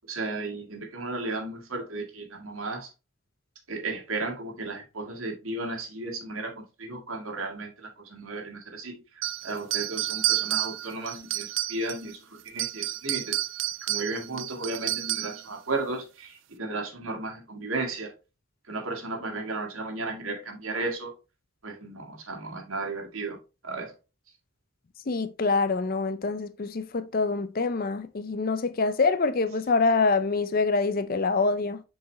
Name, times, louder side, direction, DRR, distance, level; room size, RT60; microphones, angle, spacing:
voice 1, 0.1-2.9 3.7-12.2 12.5-13.4 13.9-18.1 18.7-21.1 21.6-23.4 23.6-23.9, right 2 dB, 75° right, 1.8 m, -34 dB
sound 1, 9.2-12.1 12.5-15.5, right 16 dB, 60° right, 0.4 m, -30 dB
voice 2, 25.1-31.8, left 4 dB, 45° left, 0.5 m, -25 dB
6.6 x 4.7 x 3.1 m
head